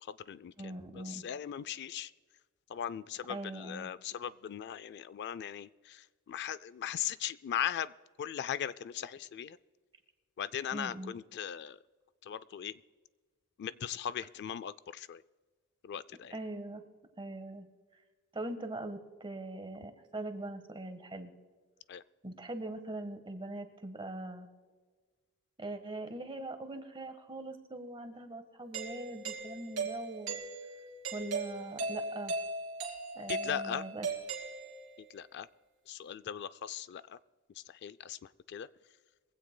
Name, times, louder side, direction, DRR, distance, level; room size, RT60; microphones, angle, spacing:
voice 1, 0.0-2.1 2.7-7.9 8.2-9.6 10.4-11.8 12.2-12.7 13.6-15.2 15.8-16.4 21.9-22.0 33.3-33.8 35.1-35.5 35.9-37.2 37.6-38.7, left 9 dB, 55° left, 17 dB, 0.3 m, -39 dB
voice 2, 0.6-1.2 3.3-3.9 10.7-11.1 16.3-16.8 17.2-17.7 18.3-21.3 22.2-24.5 25.6-30.4 31.1-32.3 33.1-34.1, right 2 dB, 25° right, 8 dB, 1.3 m, -41 dB
Doorbell, 28.7-35.1, right 3 dB, 70° right, 2.6 m, -38 dB
22.5 x 16.0 x 2.2 m, 1.4 s
head